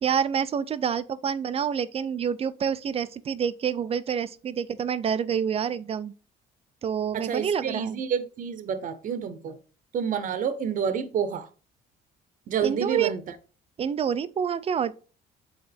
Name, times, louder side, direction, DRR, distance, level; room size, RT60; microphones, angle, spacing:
voice 1, 0.0-6.1 6.8-8.0 12.6-13.1 13.8-14.9, right 7 dB, 35° right, 0.5 m, -27 dB
voice 2, 7.1-9.6 9.9-11.5 12.5-13.2, right 7 dB, 50° right, 0.9 m, -28 dB
8.0 x 3.8 x 3.4 m
cardioid pair, 110°, 17 cm